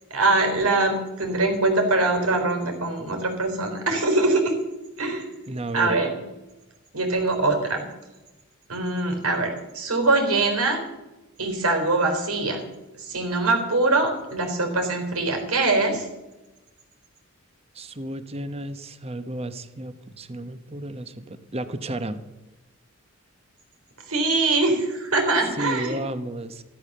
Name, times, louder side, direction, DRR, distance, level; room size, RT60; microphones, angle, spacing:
voice 1, 0.1-4.5 5.0-5.3 5.7-6.2 6.9-7.9 8.7-10.8 11.4-12.6 13.0-16.1 24.1-26.0, right 2 dB, 85° right, 4 dB, 3.9 m, -23 dB
voice 2, 5.5-6.0 17.7-22.2 25.6-26.6, right 1 dB, 25° right, 11 dB, 0.9 m, -32 dB
14.5 x 12.0 x 6.7 m, 1.0 s
head